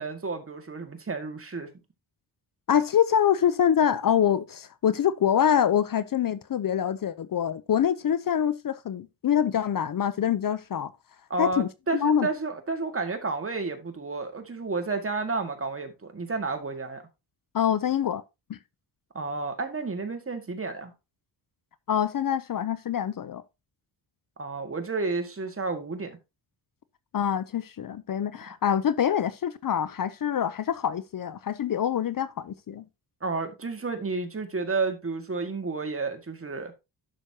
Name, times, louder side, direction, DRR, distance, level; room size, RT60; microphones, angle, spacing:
voice 1, 0.0-1.7 11.3-17.0 19.1-20.9 24.4-26.2 33.2-36.7, right 3 dB, 30° right, 1.8 m, -31 dB
voice 2, 2.7-10.9 11.4-12.3 17.5-18.2 18.5-18.6 21.9-23.4 27.1-32.8, left 9 dB, 50° left, 0.6 m, -25 dB
11.0 x 6.3 x 2.8 m
cardioid pair, 90°, 43 cm